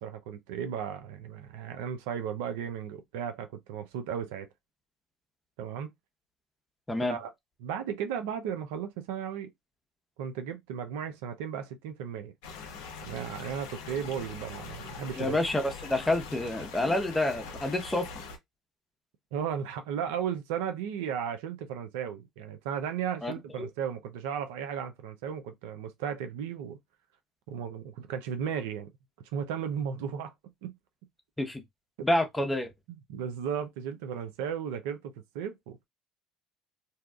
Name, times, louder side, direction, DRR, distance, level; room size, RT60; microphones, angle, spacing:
voice 1, 0.0-4.5 5.6-5.9 7.1-7.3 7.6-9.5 10.2-12.3 13.1-15.4 19.3-26.8 27.5-28.9 29.3-30.3 30.6-30.7 32.0-32.1 32.9-35.9, right 8 dB, 75° right, 0.4 m, -35 dB
sound 1, 12.4-18.4, left 5 dB, 75° left, 0.5 m, -42 dB
voice 2, 15.2-18.1 23.2-23.3 23.6-23.7 31.4-31.6 32.0-32.7, left 1 dB, 10° left, 0.8 m, -28 dB
2.7 x 2.2 x 2.3 m
hypercardioid pair, 65°, 0 cm